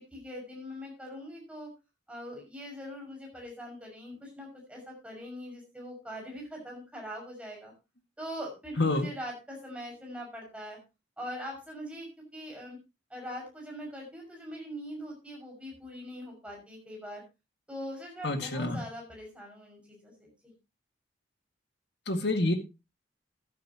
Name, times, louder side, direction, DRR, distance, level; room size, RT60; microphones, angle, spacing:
voice 1, 0.0-1.7 2.1-7.7 8.2-10.8 11.2-12.8 13.1-17.2 17.7-20.5, equal, 5° right, -1 dB, 6.0 m, -42 dB
voice 2, 8.8-9.1 18.2-18.8 22.1-22.5, left 2 dB, 60° left, 6 dB, 1.9 m, -27 dB
13.5 x 12.0 x 2.9 m, 0.27 s
head